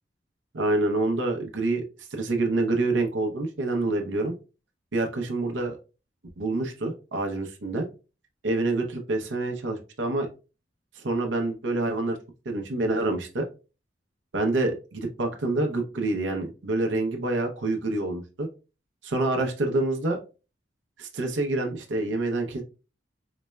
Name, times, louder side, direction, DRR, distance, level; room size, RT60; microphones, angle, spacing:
voice 1, 0.5-4.3 4.9-5.8 6.4-7.9 8.4-10.3 10.9-12.2 12.5-13.5 14.3-18.5 19.0-20.2 21.0-22.6, right 2 dB, 90° right, 3 dB, 0.6 m, -27 dB
4.0 x 3.2 x 2.2 m, 0.32 s
head